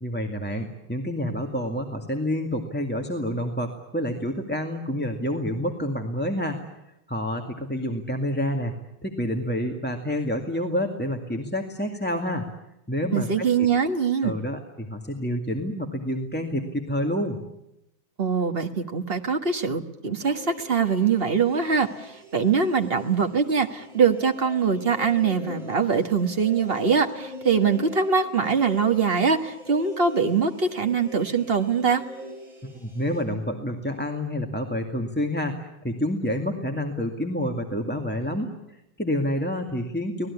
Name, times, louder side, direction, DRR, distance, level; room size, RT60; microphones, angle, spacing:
voice 1, 0.0-6.6 7.1-8.7 9.0-12.5 12.9-13.7 14.2-17.4 32.6-40.3, equal, 5° left, 2 dB, 1.9 m, -28 dB
voice 2, 13.1-14.4 18.2-32.0, right 5 dB, 30° right, 6 dB, 1.6 m, -23 dB
sound 1, 20.2-33.2, left 1 dB, 65° right, 8.1 m, -42 dB
25.5 x 19.0 x 9.8 m, 0.87 s
omnidirectional pair, 2.2 m